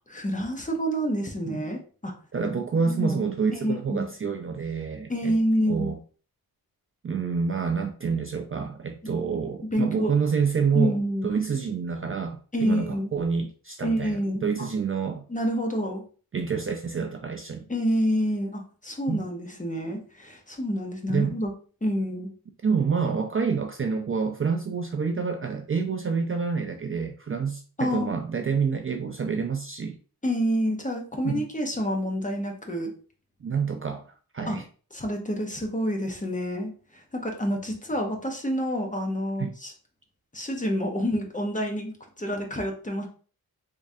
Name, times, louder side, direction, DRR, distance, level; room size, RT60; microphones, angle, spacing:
voice 1, 0.0-2.1 2.5-2.6 2.9-3.2 3.5-4.1 5.1-5.9 9.0-9.1 9.6-10.2 10.7-11.3 12.5-13.1 13.8-14.7 15.3-16.0 17.7-21.5 21.8-22.3 27.8-28.2 30.2-32.9 34.5-34.6 34.9-39.7 40.3-43.1, equal, 20° left, 2 dB, 0.9 m, -28 dB
voice 2, 2.3-5.3 5.7-6.0 7.0-10.9 11.2-15.2 16.3-17.7 19.1-19.2 21.1-21.3 22.6-30.0 31.2-31.5 33.4-34.6 39.4-39.5, right 5 dB, 35° right, 4 dB, 0.4 m, -28 dB
3.6 x 3.1 x 2.6 m, 0.39 s
wide cardioid pair, 90°, 38 cm